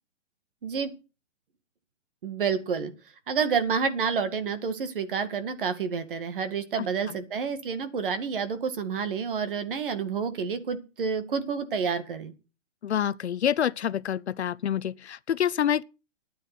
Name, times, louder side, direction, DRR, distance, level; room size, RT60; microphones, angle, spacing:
voice 1, 2.2-2.9 3.3-12.3, right 6 dB, 45° right, 2.1 m, -29 dB
voice 2, 6.8-7.2 12.8-15.8, left 9 dB, 60° left, 0.7 m, -27 dB
13.0 x 9.5 x 6.0 m
hypercardioid pair, 170°, 37 cm